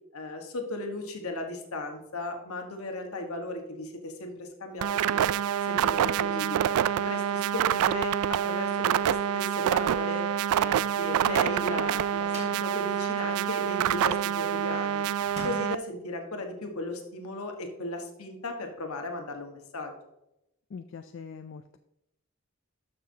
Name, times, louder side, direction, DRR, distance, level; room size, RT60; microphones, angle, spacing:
voice 1, 0.1-5.3 5.6-6.6 6.9-10.3 10.6-15.0 15.4-19.9, left 2 dB, 85° left, 4 dB, 1.4 m, -36 dB
sound 1, 4.8-15.8, right 9 dB, 90° right, 0.3 m, -27 dB
Microwave oven, 11.7-12.7 15.2-15.8, right 1 dB, 30° right, 1.9 m, -43 dB
voice 2, 20.7-21.8, left 5 dB, 55° left, 8 dB, 0.4 m, -42 dB
12.5 x 5.9 x 2.8 m, 0.86 s
head